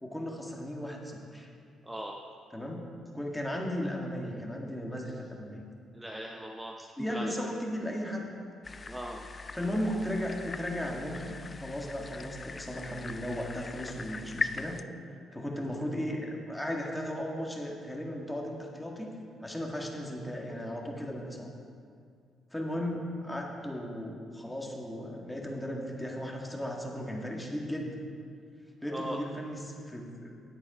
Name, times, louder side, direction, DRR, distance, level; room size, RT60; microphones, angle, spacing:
voice 1, 0.0-1.5 2.5-5.6 6.8-8.4 9.5-11.3 11.6-14.8 15.3-19.1 19.4-21.5 22.5-28.0 28.8-30.3, equal, 5° left, -1 dB, 1.7 m, -36 dB
voice 2, 1.8-2.2 5.9-6.7 7.1-7.5 8.9-9.2 28.9-29.2, right 1 dB, 10° right, 0 dB, 0.7 m, -39 dB
sound 1, 8.6-14.8, left 4 dB, 30° left, 0.3 m, -40 dB
10.0 x 8.4 x 4.9 m, 2.3 s
cardioid pair, 90°, 0 cm